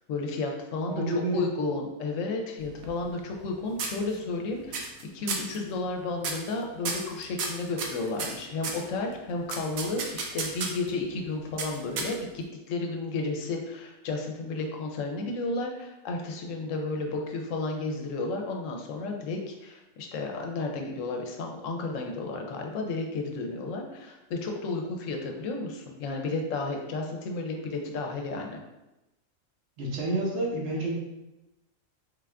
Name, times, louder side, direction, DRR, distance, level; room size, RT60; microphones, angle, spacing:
voice 1, 0.1-28.6, left 3 dB, 75° left, 2 dB, 0.9 m, -32 dB
voice 2, 0.9-1.5 29.8-30.9, right 2 dB, 60° right, -3 dB, 1.1 m, -29 dB
sound 1, 2.6-3.5 3.8-4.4 4.7-5.0 5.3-5.6 6.2-6.5 6.8-8.8 9.5-10.9 11.6-12.4, right 4 dB, 90° right, 1.0 m, -33 dB
3.7 x 2.4 x 3.3 m, 0.99 s
omnidirectional pair, 1.4 m